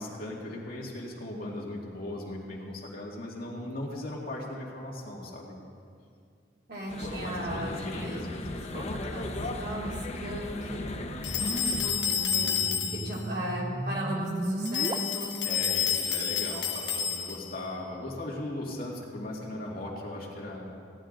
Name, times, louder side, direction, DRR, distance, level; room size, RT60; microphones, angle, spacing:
voice 1, 0.0-5.5 7.0-8.6 12.3-13.0 15.4-20.6, left 1 dB, 55° left, -3 dB, 2.2 m, -38 dB
voice 2, 6.7-8.2 8.7-10.9 11.5-15.3, right 1 dB, 60° right, -5 dB, 3.0 m, -36 dB
sound 1, 6.9-11.9, left 1 dB, 40° left, 0.7 m, -36 dB
sound 2, 9.0-14.9, right 1 dB, 25° right, 0.4 m, -38 dB
sound 3, 11.2-13.2 14.7-17.5, left 7 dB, 75° left, 1.3 m, -29 dB
17.0 x 10.5 x 3.9 m, 2.3 s
head